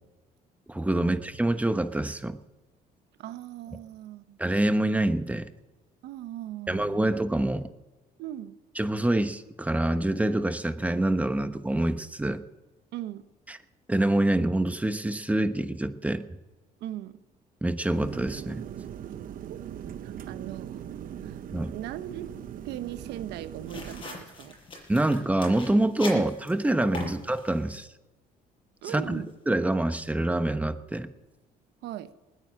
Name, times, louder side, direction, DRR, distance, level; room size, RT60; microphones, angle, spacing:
voice 1, 0.7-2.4 4.4-5.5 6.7-7.7 8.8-12.4 13.9-16.2 17.6-18.6 21.5-21.7 24.9-27.9 28.9-31.1, right 1 dB, 10° right, 10 dB, 1.0 m, -26 dB
voice 2, 3.2-4.4 6.0-7.1 8.2-8.5 12.9-13.2 16.8-17.2 19.5-19.6 20.0-20.9 21.2-21.4 21.7-24.6 26.1-26.2 27.0-27.2 28.8-29.3 31.8-32.1, right 12 dB, 85° right, 11 dB, 1.1 m, -39 dB
sound 1, 17.9-24.0, right 9 dB, 55° right, 0.9 m, -40 dB
sound 2, 23.7-27.7, left 2 dB, 30° left, 6.4 m, -42 dB
20.0 x 9.7 x 7.5 m, 1.1 s
cardioid pair, 110°, 17 cm